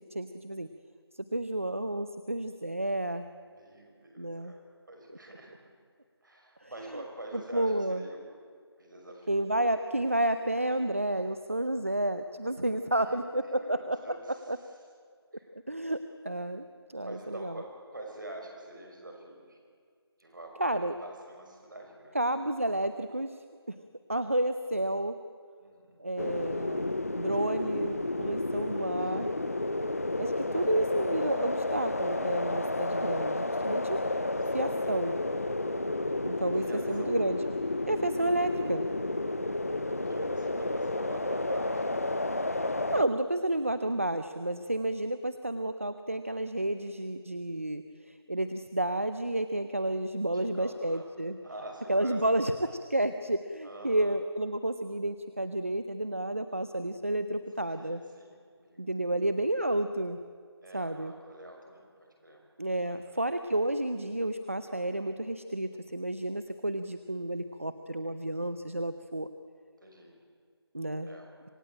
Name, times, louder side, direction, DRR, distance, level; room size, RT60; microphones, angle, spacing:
voice 1, 0.1-0.7 1.1-3.3 4.2-4.5 5.3-5.4 6.6-6.9 7.3-8.0 9.3-14.6 15.5-17.6 20.6-21.0 22.1-23.8 24.1-25.2 26.0-29.3 30.2-34.0 34.5-35.2 36.2-37.4 37.9-38.9 42.9-51.4 51.9-58.0 58.8-60.2 60.7-61.1 62.6-69.3 70.7-71.1, right 1 dB, 30° right, 10 dB, 0.6 m, -31 dB
voice 2, 3.4-4.6 4.9-5.7 6.2-8.3 8.8-9.4 12.8-14.5 15.3-15.5 17.0-19.6 20.2-22.2 25.6-26.1 29.0-29.2 34.5-34.7 36.5-37.2 39.8-41.9 46.7-46.9 50.3-51.1 51.4-52.6 53.6-54.2 57.8-58.9 60.6-62.4 62.9-63.2 69.8-70.2 71.0-71.3, right 1 dB, 50° right, 1 dB, 6.0 m, -47 dB
sound 1, 26.2-43.0, left 2 dB, 35° left, 0.7 m, -31 dB
27.0 x 17.0 x 8.9 m, 2.1 s
figure-of-eight pair, 175°, 14 cm